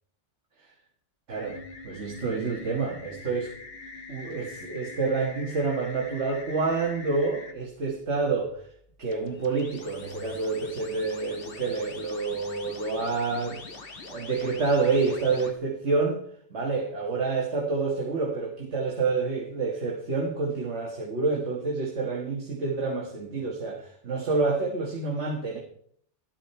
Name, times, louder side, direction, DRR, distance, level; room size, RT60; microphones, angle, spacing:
sound 1, 1.3-7.5 9.1-15.5, left 3 dB, 50° left, 1.6 m, -44 dB
voice 1, 1.3-1.6 1.8-3.5 4.1-8.6 9.0-13.6 14.1-16.2 16.5-25.6, right 4 dB, 70° right, -1 dB, 1.9 m, -28 dB
12.5 x 12.0 x 4.4 m, 0.63 s
omnidirectional pair, 1.2 m